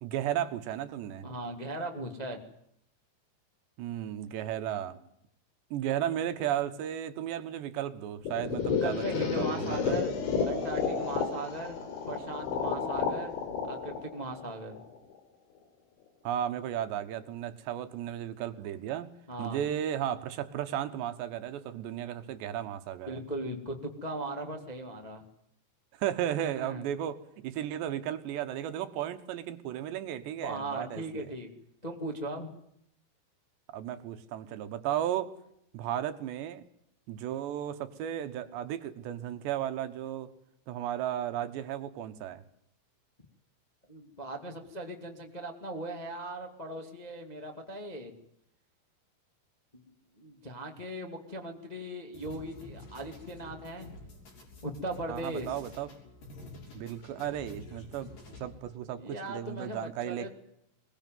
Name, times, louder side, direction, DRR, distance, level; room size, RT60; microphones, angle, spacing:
voice 1, 0.0-1.3 3.8-5.0 5.7-9.9 16.2-19.1 19.4-23.2 26.0-31.3 33.7-35.3 35.7-36.7 37.1-40.3 40.7-42.4 55.1-55.9 56.7-58.1 58.4-60.3, right 11 dB, 75° right, 10 dB, 3.4 m, -34 dB
voice 2, 1.2-2.4 8.8-10.1 10.4-11.8 12.1-13.3 13.7-14.8 19.3-19.6 23.1-25.2 26.5-26.8 30.4-31.5 31.8-32.5 43.9-48.1 49.8-53.9 54.6-55.5 58.9-60.3, right 1 dB, 15° left, 3 dB, 1.4 m, -38 dB
sound 1, 8.3-15.1, left 6 dB, 80° left, 5.9 m, -32 dB
sound 2, 52.1-58.8, left 2 dB, 45° left, 8.0 m, -49 dB
22.0 x 21.0 x 9.4 m, 0.74 s
omnidirectional pair, 5.3 m